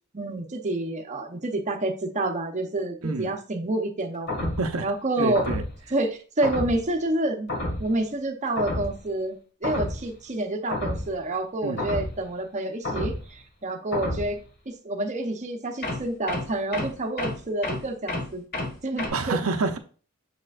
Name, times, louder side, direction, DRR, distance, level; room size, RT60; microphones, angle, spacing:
voice 1, 0.1-4.3 4.8-5.5 5.9-7.5 7.8-14.4 14.8-18.4 18.8-19.4, right 2 dB, 35° right, 0.8 m, -28 dB
sound 1, 4.3-4.7 5.3-5.8 6.4-6.9 7.5-8.0 8.6-9.0 9.6-10.1 10.7-11.2 11.8-12.2 12.8-13.3 13.9-14.4 15.8-19.1, left 1 dB, 50° left, 1.8 m, -30 dB
voice 2, 4.4-4.9 5.2-5.6 11.6-11.8 19.1-19.8, right 3 dB, 85° right, 0.7 m, -28 dB
6.7 x 6.5 x 2.5 m
head